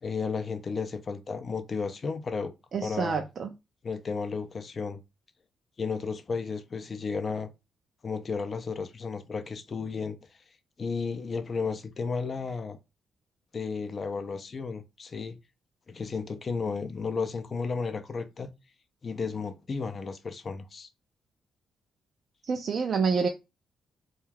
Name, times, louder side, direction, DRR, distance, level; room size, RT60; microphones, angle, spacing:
voice 1, 0.0-2.5 2.8-3.2 3.8-5.0 5.8-7.5 8.0-10.2 10.8-12.8 13.5-15.4 15.9-18.5 19.0-20.9, left 5 dB, 40° left, 0.4 m, -33 dB
voice 2, 2.7-3.5 22.5-23.3, right 5 dB, 55° right, 0.3 m, -27 dB
2.3 x 2.3 x 3.2 m
cardioid pair, 80°, 0 cm